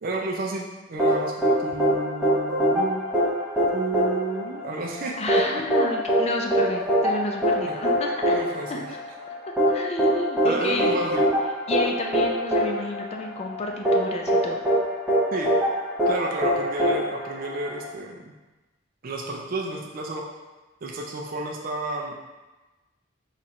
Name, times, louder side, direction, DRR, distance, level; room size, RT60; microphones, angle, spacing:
voice 1, 0.0-3.0 3.7-5.2 5.5-5.6 7.6-7.7 8.3-8.9 10.4-11.3 15.3-15.5 16.1-18.3 19.0-20.2 20.8-22.2, right 2 dB, 45° right, 0 dB, 0.4 m, -31 dB
sound 1, 1.0-17.9, equal, 5° right, 0.9 m, -24 dB
voice 2, 5.2-8.4 8.7-9.0 9.7-11.0 11.7-14.6, left 2 dB, 30° left, 1 dB, 0.4 m, -31 dB
4.2 x 2.4 x 4.2 m, 1.1 s
head